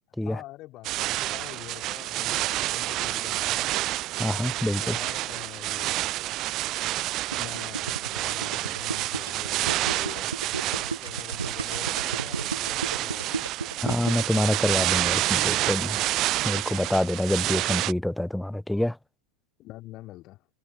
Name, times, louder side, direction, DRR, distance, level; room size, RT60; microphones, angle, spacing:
voice 1, 0.2-3.7 4.8-6.2 7.3-10.3 10.7-13.9 19.6-20.5, left 17 dB, 35° left, 2.9 m, -45 dB
sound 1, 0.8-17.9, right 16 dB, 35° right, 0.4 m, -29 dB
voice 2, 4.2-5.0 13.8-16.0 16.4-19.0, left 1 dB, 5° left, 0.9 m, -26 dB
Gurgling, 7.3-14.4, right 4 dB, 80° right, 0.9 m, -34 dB
figure-of-eight pair, 90°, 0 cm